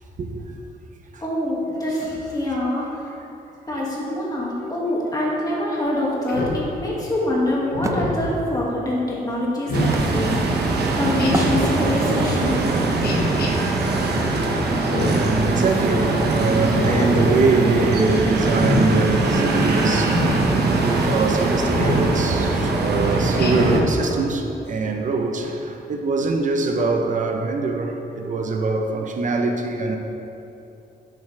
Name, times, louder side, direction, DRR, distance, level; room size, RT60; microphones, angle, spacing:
voice 1, 0.2-0.6 1.1-1.2 15.0-20.2 20.8-30.0, right 3 dB, 50° right, 3 dB, 0.8 m, -23 dB
voice 2, 1.2-2.9 3.7-12.7, left 1 dB, 20° left, -5 dB, 2.1 m, -25 dB
Speech synthesizer, 6.3-6.6 7.7-8.2 9.7-10.0 11.2-11.7 13.0-13.5 14.8-15.3 16.6-17.1 18.5-18.9 20.1-20.4 21.7-22.1 23.4-23.9, left 2 dB, 70° left, 1.3 m, -25 dB
Wood, 7.8-10.8 11.3-12.2, right 3 dB, 20° right, 0.4 m, -33 dB
sound 1, 9.7-23.8, right 2 dB, 80° right, 1.1 m, -21 dB
11.0 x 7.0 x 3.4 m, 2.9 s
cardioid pair, 115°, 17 cm